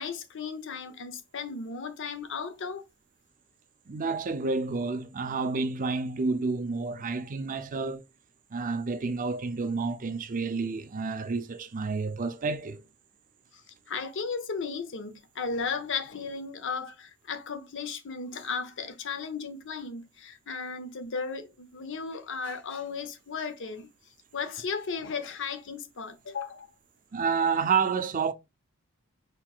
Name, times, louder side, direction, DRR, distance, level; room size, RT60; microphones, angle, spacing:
voice 1, 0.0-2.8 13.5-13.6 13.9-23.9 24.3-26.7, left 5 dB, 60° left, 0.7 m, -35 dB
voice 2, 3.9-8.0 8.5-12.8 27.1-28.3, right 4 dB, 40° right, 0.5 m, -29 dB
4.8 x 4.4 x 2.4 m
head